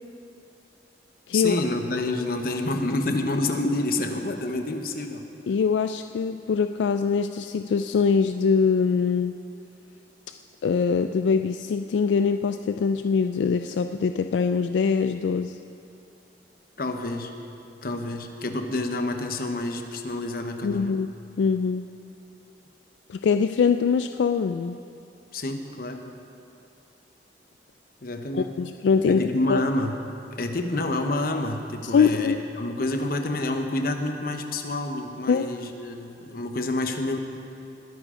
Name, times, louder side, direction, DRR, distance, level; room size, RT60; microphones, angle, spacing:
voice 1, 1.3-5.3 16.8-17.3 17.8-21.0 25.3-26.1 28.0-28.5 29.1-30.0 30.3-37.2, left 2 dB, 55° left, 5 dB, 0.9 m, -28 dB
voice 2, 5.5-9.4 10.6-15.6 20.6-21.1 21.4-21.8 23.1-24.8 28.3-29.2 29.5-29.6 31.8-32.4 35.3-35.4, left 5 dB, 80° left, 8 dB, 0.3 m, -23 dB
20.5 x 10.0 x 3.8 m, 2.7 s
head